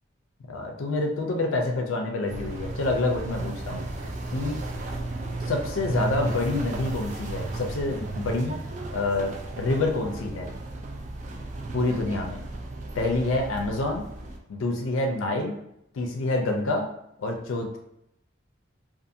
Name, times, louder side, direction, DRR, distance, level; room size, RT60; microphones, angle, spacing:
voice 1, 0.5-3.8 4.3-4.6 5.4-8.6 8.9-10.5 11.7-12.4 12.9-14.0 14.5-15.6 15.9-16.9 17.2-17.8, left 2 dB, 85° left, 3 dB, 0.4 m, -27 dB
sound 1, 2.3-14.4, right 2 dB, 40° right, 0.3 m, -34 dB
2.5 x 2.4 x 2.6 m, 0.78 s
head